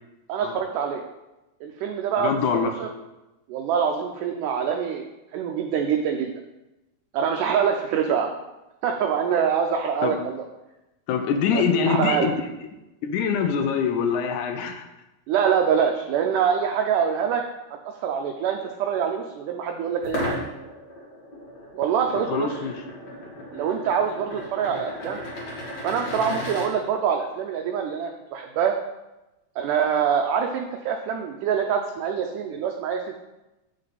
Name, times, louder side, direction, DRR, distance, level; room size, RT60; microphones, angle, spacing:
voice 1, 0.3-1.0 1.6-2.9 3.5-6.3 7.1-8.4 8.8-10.5 11.5-12.3 15.3-17.4 18.0-20.4 21.7-22.6 23.5-25.3 25.8-28.7 29.6-33.2, right 7 dB, 80° right, 3 dB, 2.0 m, -25 dB
voice 2, 2.2-2.7 10.0-10.1 11.1-12.3 13.0-14.9 22.3-22.8, left 6 dB, 75° left, 6 dB, 2.0 m, -24 dB
sound 1, 20.0-26.7, left 1 dB, 40° left, 1.7 m, -35 dB
8.4 x 6.5 x 4.1 m, 1.0 s
omnidirectional pair, 4.0 m